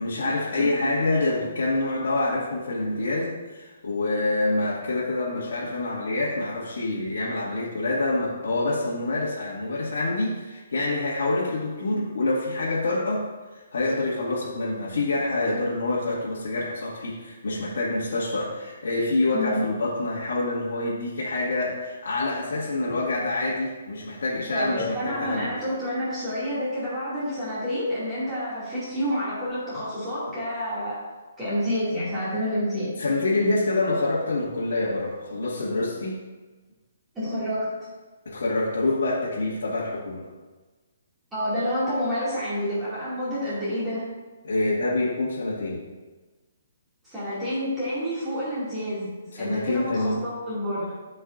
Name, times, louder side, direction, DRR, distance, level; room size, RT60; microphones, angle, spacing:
voice 1, 0.0-13.3 13.5-25.5 33.0-36.2 38.3-40.3 44.4-45.8 49.3-50.2, left 2 dB, 80° left, -7 dB, 2.0 m, -26 dB
voice 2, 24.5-31.0 31.4-32.9 37.1-37.7 41.3-44.1 47.0-49.1 49.4-50.9, equal, 10° right, -12 dB, 2.4 m, -28 dB
13.5 x 5.4 x 2.6 m, 1.3 s
hypercardioid pair, 170°, 0 cm